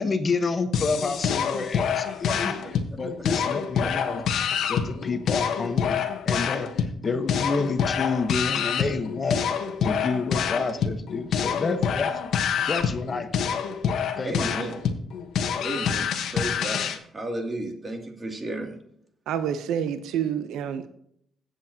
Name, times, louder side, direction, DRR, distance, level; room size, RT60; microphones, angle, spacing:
voice 1, 0.0-4.2 4.7-9.4 9.8-12.2 12.7-13.5 14.2-14.5, left 4 dB, 40° left, 9 dB, 1.1 m, -29 dB
sound 1, 0.7-17.0, left 7 dB, 70° left, 1.1 m, -27 dB
voice 2, 14.2-14.7 15.6-18.7, right 1 dB, 30° right, 3 dB, 2.5 m, -33 dB
voice 3, 19.3-20.9, right 8 dB, 85° right, 10 dB, 0.7 m, -28 dB
16.5 x 7.8 x 2.8 m, 0.70 s
cardioid pair, 90°, 0 cm